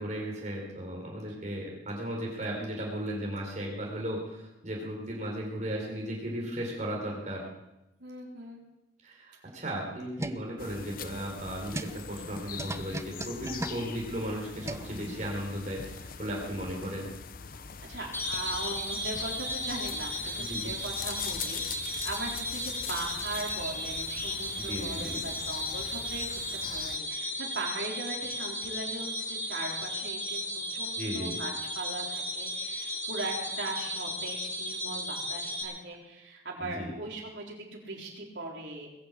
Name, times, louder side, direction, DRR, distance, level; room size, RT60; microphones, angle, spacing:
voice 1, 0.0-7.4 9.0-17.1 20.2-20.7 24.6-25.2 31.0-31.4 36.6-36.9, equal, 40° right, -2 dB, 4.6 m, -36 dB
voice 2, 8.0-8.6 11.2-11.3 17.8-38.9, right 2 dB, 75° right, -2 dB, 4.4 m, -39 dB
sound 1, 9.7-15.3, right 1 dB, 15° right, 0.6 m, -40 dB
sound 2, 10.6-27.0, left 7 dB, 50° left, 0.7 m, -42 dB
sound 3, 18.1-35.6, equal, 15° left, 2.6 m, -35 dB
21.0 x 7.8 x 8.7 m, 0.94 s
head